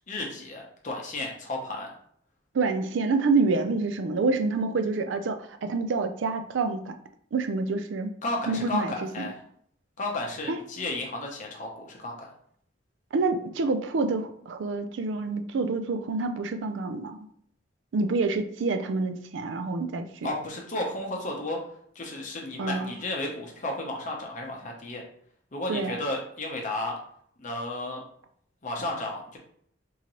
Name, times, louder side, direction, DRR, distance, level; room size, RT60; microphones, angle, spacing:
voice 1, 0.1-1.9 8.2-9.4 10.0-12.3 20.2-21.6 21.9-25.0 25.5-26.9 27.4-28.0 28.6-29.4, left 2 dB, 40° left, 0 dB, 0.8 m, -33 dB
voice 2, 2.5-6.9 7.3-8.1 8.5-9.3 10.5-10.6 13.1-17.1 17.9-20.0 22.6-23.0 25.7-26.0, right 3 dB, 75° right, 7 dB, 0.4 m, -27 dB
3.8 x 2.9 x 3.0 m, 0.64 s
head